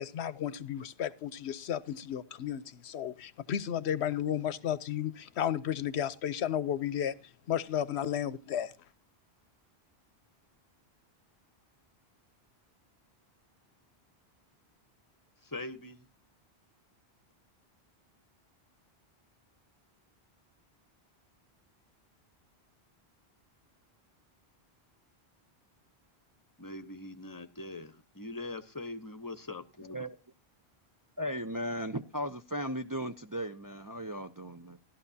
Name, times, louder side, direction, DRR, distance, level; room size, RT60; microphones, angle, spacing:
voice 1, 0.0-7.1 7.5-8.7, left 10 dB, 90° left, 1.0 m, -33 dB
voice 2, 15.4-16.1 26.6-30.1, left 2 dB, 20° left, 0.9 m, -42 dB
voice 3, 31.2-34.8, equal, 25° right, 0.5 m, -36 dB
15.5 x 12.0 x 2.8 m
omnidirectional pair, 1.1 m